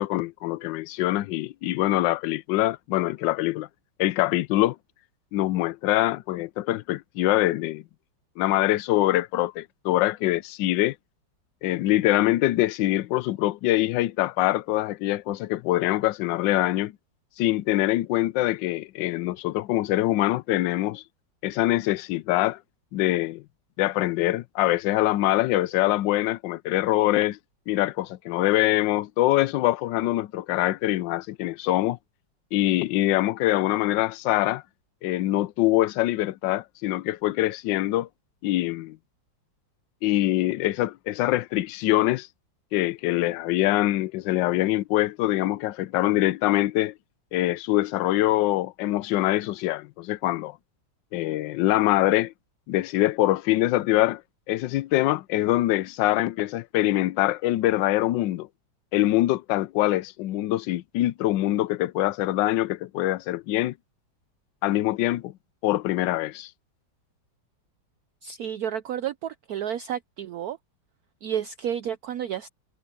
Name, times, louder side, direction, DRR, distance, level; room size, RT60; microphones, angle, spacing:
voice 1, 0.0-3.7 4.0-4.8 5.3-7.8 8.4-11.0 11.6-16.9 17.4-21.0 21.4-22.6 22.9-23.4 23.8-27.4 27.7-32.0 32.5-34.6 35.0-38.1 38.4-39.0 40.0-42.3 42.7-46.9 47.3-50.6 51.1-52.3 52.7-54.2 54.5-58.5 58.9-63.7 64.6-65.3 65.6-66.5, left 16 dB, 75° left, 1.3 m, -24 dB
voice 2, 68.2-70.6 71.2-72.5, right 9 dB, 65° right, 1.0 m, -31 dB
omnidirectional pair, 2.1 m